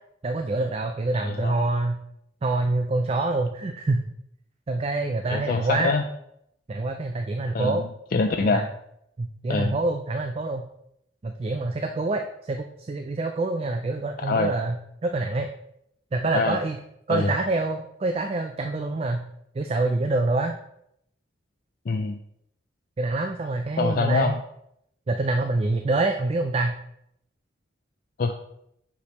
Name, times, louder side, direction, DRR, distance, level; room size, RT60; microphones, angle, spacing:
voice 1, 0.2-2.0 2.4-4.1 4.7-5.9 6.7-7.9 8.5-8.6 9.2-10.6 11.2-14.8 15.0-15.5 16.1-16.8 17.1-19.3 19.5-20.6 23.0-24.3 25.1-26.7, right 2 dB, 30° right, 5 dB, 0.3 m, -26 dB
voice 2, 1.2-1.6 5.3-6.0 7.5-8.6 9.5-9.8 14.2-14.5 16.3-16.6 17.1-17.3 21.9-22.2 23.8-24.4 28.2-28.3, left 3 dB, 50° left, 5 dB, 0.4 m, -24 dB
6.1 x 5.7 x 3.1 m, 0.76 s
head